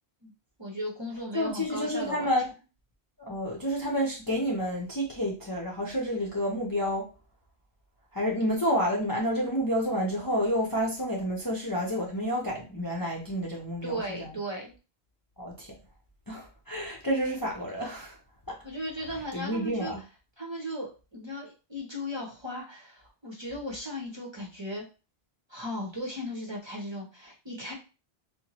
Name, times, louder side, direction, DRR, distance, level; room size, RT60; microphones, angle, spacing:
voice 1, 0.6-2.3 13.8-14.7 18.6-19.9 20.4-24.8 25.5-27.7, equal, 30° right, 0.7 m, -36 dB
voice 2, 1.3-2.5 3.2-7.1 8.1-14.3 15.4-15.8 16.3-18.2 18.5-18.6 19.3-20.0, equal, 25° left, 0.5 m, -29 dB
4.3 x 2.1 x 2.9 m
omnidirectional pair, 1.1 m